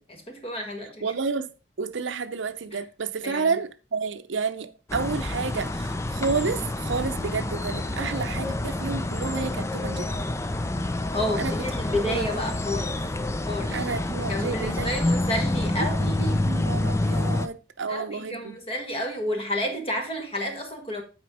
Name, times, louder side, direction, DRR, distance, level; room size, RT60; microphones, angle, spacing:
voice 1, 0.1-1.1 2.7-2.8 3.2-3.5 11.1-13.0 13.5-13.8 14.3-16.5 17.9-21.0, left 1 dB, 30° left, 1.7 m, -30 dB
voice 2, 1.0-1.5 1.8-10.1 11.4-11.5 12.1-12.5 13.7-14.9 15.5-15.9 16.2-18.6, right 5 dB, 85° right, 0.6 m, -30 dB
sound 1, 4.9-17.5, left 2 dB, 15° left, 0.4 m, -28 dB
9.3 x 4.4 x 4.9 m
head